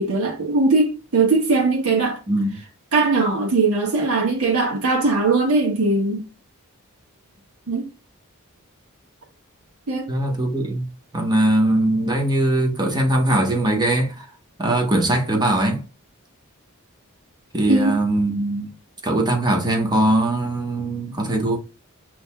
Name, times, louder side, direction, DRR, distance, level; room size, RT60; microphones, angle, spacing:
voice 1, 0.0-2.2 2.9-6.3 7.7-7.8 9.9-10.1 17.7-18.0, right 3 dB, 80° right, 1.3 m, -20 dB
voice 2, 2.3-2.6 10.1-14.3 14.6-15.8 17.5-18.7 19.0-21.6, right 1 dB, 20° right, 1.0 m, -21 dB
6.2 x 3.1 x 2.2 m
head